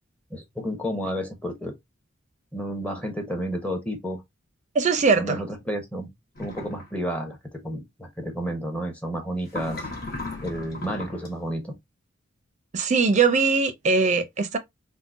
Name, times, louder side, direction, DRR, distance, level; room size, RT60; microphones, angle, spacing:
voice 1, 0.3-1.7 2.5-4.2 5.2-6.1 6.4-9.8 10.4-11.8, equal, 10° left, 0.7 m, -31 dB
voice 2, 4.7-5.4 12.7-14.6, right 4 dB, 40° right, 0.5 m, -21 dB
sound 1, 6.4-6.9 9.5-11.3, left 2 dB, 50° left, 1.2 m, -36 dB
3.6 x 2.1 x 2.4 m
head